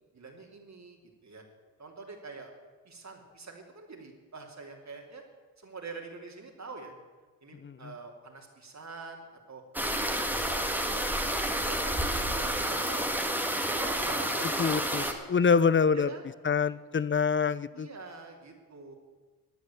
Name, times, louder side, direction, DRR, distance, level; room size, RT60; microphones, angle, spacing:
voice 1, 0.1-1.4 1.8-2.5 2.8-5.2 5.6-6.9 7.4-9.6 10.0-13.3 13.7-15.7 15.9-16.3 17.7-19.0, right 4 dB, 40° right, 1 dB, 2.8 m, -45 dB
sound 1, 9.7-15.1, right 1 dB, 5° right, 1.9 m, -30 dB
voice 2, 14.6-15.0 15.3-16.1 16.5-17.9, left 6 dB, 30° left, 18 dB, 0.6 m, -25 dB
14.0 x 9.3 x 7.1 m, 1.4 s
supercardioid pair, 50°, 42 cm